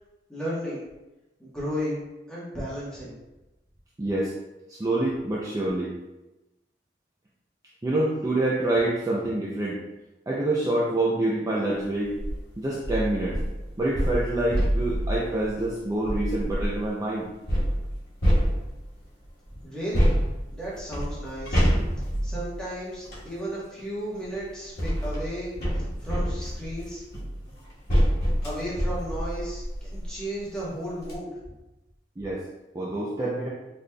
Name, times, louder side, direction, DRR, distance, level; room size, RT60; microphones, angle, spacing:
voice 1, 0.3-0.8 1.4-3.1 19.6-20.2 20.5-21.7 22.2-27.0 28.4-31.4, equal, 5° left, -8 dB, 1.1 m, -34 dB
voice 2, 4.0-4.3 4.7-5.9 7.8-9.8 10.3-12.1 12.6-13.4 13.8-17.3 32.2-32.4 32.7-33.5, right 2 dB, 20° right, -5 dB, 0.4 m, -26 dB
sound 1, 12.0-12.4 12.8-16.9 17.5-19.0 19.9-23.3 24.2-30.2 30.6-30.7 31.0-31.1, equal, 60° left, 1.1 m, -27 dB
4.0 x 3.3 x 2.2 m, 1.0 s
head